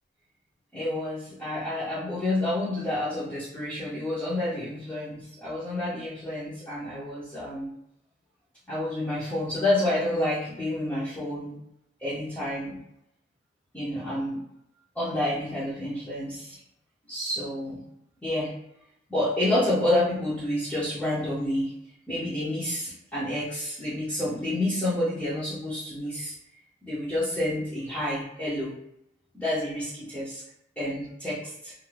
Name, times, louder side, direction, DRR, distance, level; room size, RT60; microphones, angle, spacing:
voice 1, 0.7-7.7 8.7-11.6 12.0-12.8 13.7-14.4 14.9-16.6 17.1-17.8 18.2-18.5 19.1-21.7 22.1-26.3 26.8-28.8 29.3-30.4 30.8-31.7, left 1 dB, 5° left, -12 dB, 0.7 m, -29 dB
2.5 x 2.4 x 3.2 m, 0.79 s
head